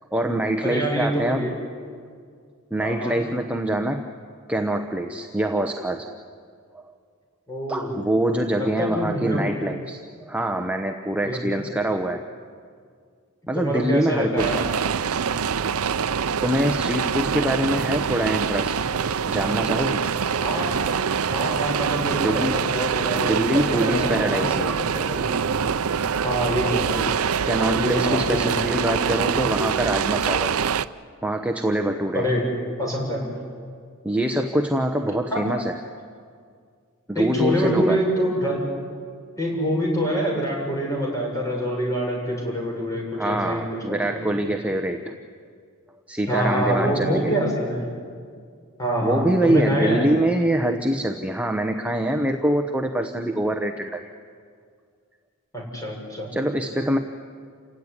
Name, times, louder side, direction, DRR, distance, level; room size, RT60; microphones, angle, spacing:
voice 1, 0.1-1.5 2.7-4.0 4.5-6.1 6.7-6.8 7.7-12.2 13.5-14.7 16.4-18.7 19.2-20.0 22.2-22.6 23.1-24.8 27.5-30.5 31.2-32.3 34.0-35.8 37.1-38.1 43.1-45.2 46.1-47.4 49.0-54.1 56.3-57.0, right 1 dB, 5° right, 4 dB, 0.9 m, -24 dB
voice 2, 0.6-1.5 2.8-3.2 7.5-7.9 8.6-9.5 11.2-11.6 13.5-14.6 20.4-20.8 21.3-25.4 26.2-27.1 27.7-29.0 32.1-32.5 32.8-33.3 35.3-35.4 37.1-38.6 39.4-44.2 46.3-47.8 48.8-50.1 55.5-56.4, equal, 15° left, -1 dB, 6.9 m, -26 dB
sound 1, 14.4-30.8, right 6 dB, 70° right, 0.6 m, -24 dB
29.0 x 17.0 x 9.8 m, 2.1 s
head